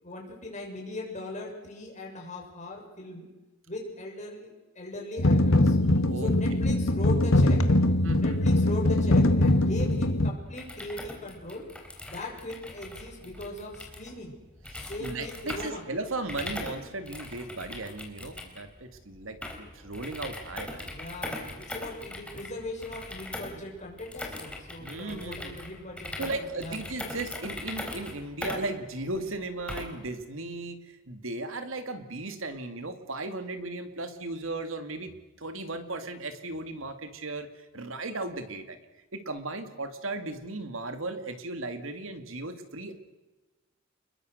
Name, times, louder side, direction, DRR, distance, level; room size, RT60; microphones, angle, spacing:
voice 1, 0.0-3.3 3.7-5.8 6.2-7.7 8.2-11.7 12.1-14.3 14.8-15.8 20.8-26.8, left 2 dB, 35° left, 0 dB, 6.9 m, -39 dB
sound 1, 5.2-10.3, left 1 dB, 80° left, 1.7 m, -22 dB
voice 2, 8.0-8.4 14.7-20.9 24.8-25.6 26.2-38.8 39.1-43.0, right 2 dB, 80° right, 8 dB, 2.4 m, -36 dB
sound 2, 10.5-30.1, left 2 dB, 5° left, 3.9 m, -41 dB
29.5 x 21.5 x 6.6 m, 1.1 s
head